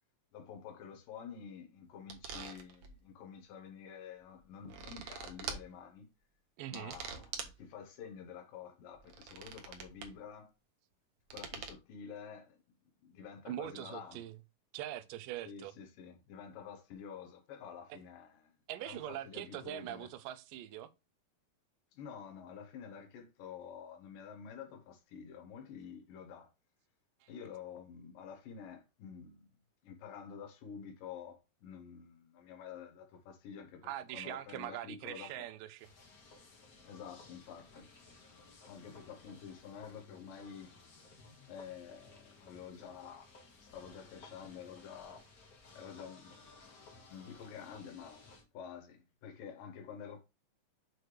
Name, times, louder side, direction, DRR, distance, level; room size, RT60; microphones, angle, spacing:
voice 1, 0.3-6.1 6.7-10.5 11.3-12.6 13.0-14.2 15.4-18.5 18.8-20.1 21.9-26.5 27.3-29.5 29.8-35.4 36.8-37.9 38.7-40.7 41.5-43.3 43.6-45.3 45.7-46.5 47.1-50.2, left 7 dB, 85° left, 2.9 m, -49 dB
sound 1, 2.1-2.9 4.4-5.6 6.7-7.6 8.9-10.1 11.3-11.7, right 6 dB, 65° right, 1.6 m, -44 dB
voice 2, 6.6-6.9 13.5-14.4 14.7-15.7 17.9-18.0 18.7-20.9 27.2-27.3 33.8-35.9, right 13 dB, 85° right, 2.3 m, -42 dB
sound 2, 35.8-48.4, left 3 dB, 50° left, 1.1 m, -58 dB
7.7 x 3.3 x 4.6 m
omnidirectional pair, 3.8 m